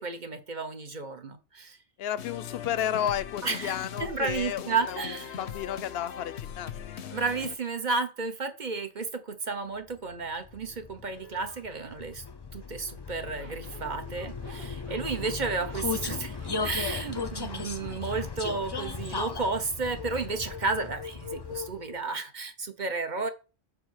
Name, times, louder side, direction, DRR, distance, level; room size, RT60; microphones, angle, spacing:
voice 1, 0.0-1.8 3.4-5.4 7.1-12.2 12.5-23.3, right 4 dB, 45° right, 1.1 m, -32 dB
voice 2, 2.0-6.7, left 10 dB, 70° left, 0.8 m, -32 dB
sound 1, 2.2-7.6, left 8 dB, 90° left, 1.1 m, -40 dB
Vehicle, 10.1-22.0, left 4 dB, 30° left, 0.6 m, -36 dB
Zipper (clothing), 13.3-18.4, right 3 dB, 65° right, 1.9 m, -51 dB
7.5 x 4.2 x 6.5 m
omnidirectional pair, 1.1 m